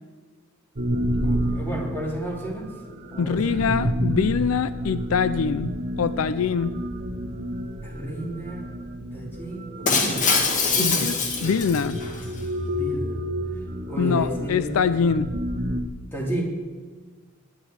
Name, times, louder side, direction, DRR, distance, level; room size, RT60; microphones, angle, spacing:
sound 1, 0.8-15.8, equal, 45° right, 1.2 m, -30 dB
voice 1, 1.2-2.7 3.1-3.6 7.8-8.6 9.1-10.4 10.7-11.2 12.7-13.2 13.8-14.8 16.1-16.4, right 1 dB, 10° left, -3 dB, 3.8 m, -32 dB
voice 2, 3.2-5.7 6.0-6.7 10.8-11.2 11.4-12.0 14.0-15.3, left 6 dB, 70° left, 14 dB, 0.4 m, -24 dB
Shatter, 9.9-12.3, left 4 dB, 35° left, 1.9 m, -23 dB
19.5 x 10.5 x 4.8 m, 1.4 s
head